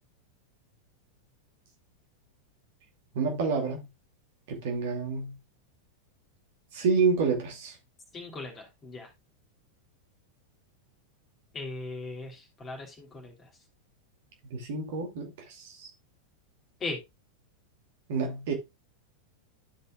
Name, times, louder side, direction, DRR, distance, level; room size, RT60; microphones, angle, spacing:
voice 1, 3.1-3.8 4.5-5.3 6.7-7.7 14.5-15.3 15.8-15.9 18.1-18.5, right 5 dB, 55° right, 2.4 m, -28 dB
voice 2, 8.1-9.1 11.5-13.5 16.8-17.0, left 3 dB, 20° left, 3.1 m, -38 dB
13.0 x 5.5 x 2.3 m
figure-of-eight pair, 90°, 0 cm